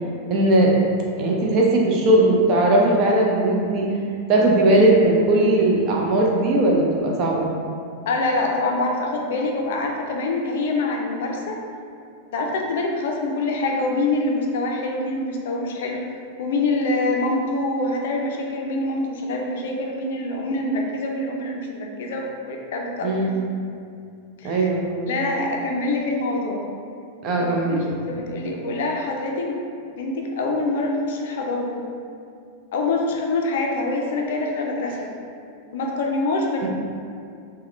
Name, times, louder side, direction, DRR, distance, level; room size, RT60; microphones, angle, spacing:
voice 1, 0.3-0.7 1.2-3.8 4.3-7.5 23.0-23.4 24.4-25.1 27.2-27.8 36.6-36.7, right 1 dB, 40° right, -2 dB, 0.6 m, -18 dB
voice 2, 8.1-11.6 12.3-16.0 16.4-23.4 24.4-24.7 25.1-26.6 27.4-29.6 29.9-31.8 32.7-35.1 35.7-36.7, left 2 dB, 55° left, 0 dB, 0.4 m, -25 dB
3.5 x 2.1 x 3.2 m, 2.4 s
figure-of-eight pair, 90°, 0 cm